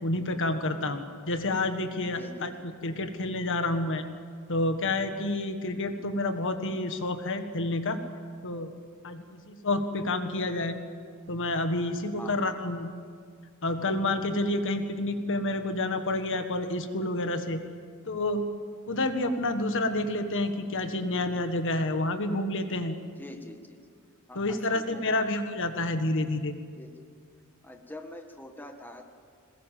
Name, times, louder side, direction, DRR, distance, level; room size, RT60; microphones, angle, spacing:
voice 1, 0.0-2.5 2.8-4.0 4.5-8.0 8.4-8.7 9.0-10.8 11.3-12.9 13.6-17.6 18.1-18.4 18.9-23.0 24.3-26.6, left 2 dB, 60° left, 7 dB, 1.7 m, -29 dB
voice 2, 2.1-2.7 12.2-12.7 23.2-23.8 24.3-25.2 26.8-26.9 27.6-29.1, left 1 dB, 10° left, 4 dB, 1.6 m, -45 dB
22.0 x 20.0 x 7.6 m, 2.2 s
head